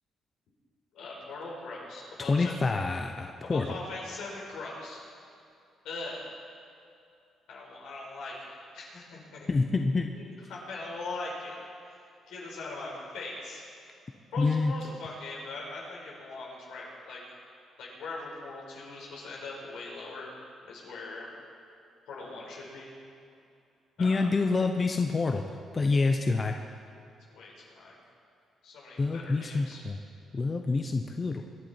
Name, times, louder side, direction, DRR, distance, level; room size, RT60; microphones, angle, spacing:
voice 1, 0.9-2.5 3.4-5.0 5.8-6.3 7.5-9.5 10.1-11.5 11.8-11.9 12.3-13.6 14.3-17.2 17.8-20.3 20.7-21.3 22.1-22.9 24.0-24.2 27.3-28.0 28.6-29.8, left 3 dB, 85° left, -3 dB, 4.7 m, -41 dB
voice 2, 2.2-3.8 9.5-10.1 14.4-14.7 24.0-25.4 25.7-26.6 29.0-30.0 30.3-31.4, left 3 dB, 30° left, 4 dB, 0.8 m, -27 dB
23.5 x 10.5 x 4.5 m, 2.6 s
cardioid pair, 90°, 0 cm